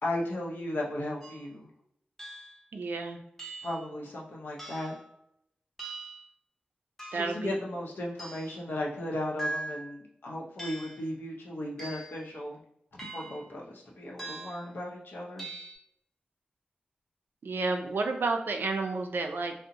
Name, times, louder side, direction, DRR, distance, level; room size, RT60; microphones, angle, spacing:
voice 1, 0.0-1.6 3.6-4.9 7.1-12.6 13.1-15.5, left 1 dB, 80° left, -3 dB, 0.6 m, -35 dB
sound 1, 1.2-1.5 2.2-2.6 3.4-3.9 4.6-5.0 5.8-6.3 7.0-7.4 8.2-8.6 9.4-9.9 10.6-11.0 11.8-12.2 13.0-13.5 14.2-14.7 15.4-15.7, right 2 dB, 10° left, 0.7 m, -40 dB
voice 2, 2.7-3.2 7.1-7.6 17.4-19.5, right 3 dB, 85° right, 3 dB, 0.3 m, -31 dB
2.6 x 2.0 x 2.6 m, 0.76 s
wide cardioid pair, 60°, 3 cm